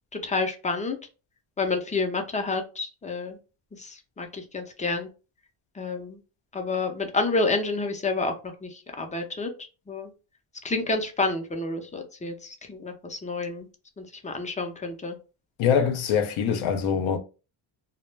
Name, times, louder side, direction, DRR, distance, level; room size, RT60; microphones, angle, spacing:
voice 1, 0.1-1.0 1.6-3.4 3.8-5.1 5.7-6.2 6.5-9.5 9.9-10.1 10.6-13.7 14.0-15.2, left 3 dB, 15° left, 0.4 m, -29 dB
voice 2, 15.6-17.2, left 7 dB, 75° left, 0.6 m, -23 dB
2.1 x 2.0 x 3.1 m
cardioid pair, 100°, 49 cm